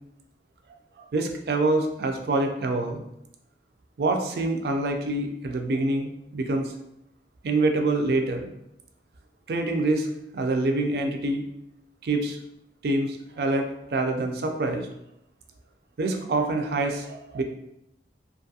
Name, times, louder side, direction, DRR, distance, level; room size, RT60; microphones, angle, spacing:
voice 1, 1.1-3.0 4.0-6.7 7.4-8.5 9.5-10.1 10.3-11.4 12.0-12.4 12.8-14.9 16.0-17.4, right 2 dB, 60° right, 4 dB, 0.4 m, -26 dB
2.6 x 2.3 x 2.7 m, 0.79 s
head